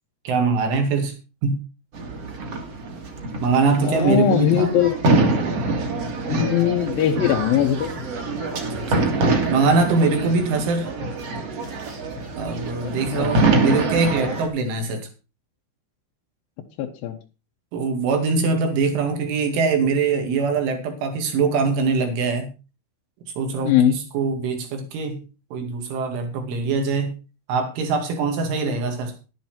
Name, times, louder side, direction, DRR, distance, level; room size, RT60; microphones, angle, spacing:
voice 1, 0.3-1.1 1.4-1.6 3.4-4.7 8.5-10.9 12.4-15.1 17.7-22.5 23.4-25.2 25.5-27.1 27.5-29.1, right 4 dB, 75° right, 4 dB, 4.8 m, -23 dB
sound 1, 1.9-14.5, right 3 dB, 45° right, 2.2 m, -25 dB
voice 2, 3.8-4.9 6.3-8.0 12.8-13.4 16.8-17.2 23.6-24.0, left 9 dB, 75° left, 2 dB, 2.2 m, -20 dB
11.5 x 10.5 x 4.4 m, 0.31 s
omnidirectional pair, 5.6 m